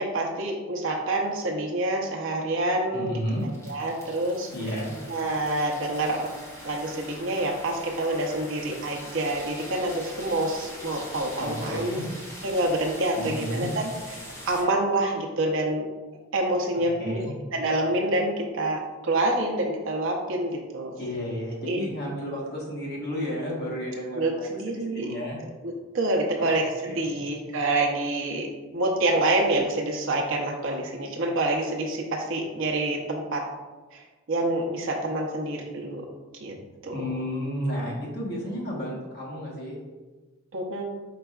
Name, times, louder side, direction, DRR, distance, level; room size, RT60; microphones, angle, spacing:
voice 1, 0.0-3.1 3.7-4.5 5.1-6.3 6.6-12.0 12.4-13.9 14.5-15.9 16.3-17.2 17.5-21.0 21.7-21.8 24.1-25.1 25.9-28.5 28.7-33.4 33.9-36.0 36.4-36.5 36.8-36.9 40.5-40.9, right 2 dB, 60° right, 0 dB, 0.8 m, -27 dB
voice 2, 2.9-3.5 4.5-4.9 11.4-12.1 13.1-13.7 16.7-17.3 21.0-24.5 24.7-25.4 26.4-27.2 36.9-39.8, equal, 50° left, -3 dB, 1.2 m, -32 dB
sound 1, 3.2-14.6, equal, 15° left, 1.0 m, -43 dB
4.8 x 4.5 x 2.3 m, 1.2 s
head